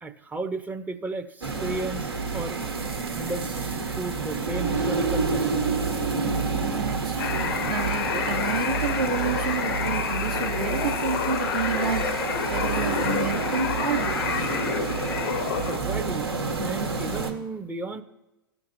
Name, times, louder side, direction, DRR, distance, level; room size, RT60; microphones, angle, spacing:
voice 1, 0.0-2.6 3.2-5.6 15.7-16.3 16.6-18.0, right 3 dB, 15° right, 9 dB, 0.6 m, -34 dB
sound 1, 1.4-17.3, right 4 dB, 85° right, 1.3 m, -29 dB
voice 2, 6.6-12.2 12.5-14.6, right 6 dB, 65° right, -2 dB, 1.1 m, -30 dB
sound 2, 7.2-15.8, left 8 dB, 65° left, 0.6 m, -29 dB
14.0 x 5.8 x 2.6 m, 0.99 s
figure-of-eight pair, 100°, 12 cm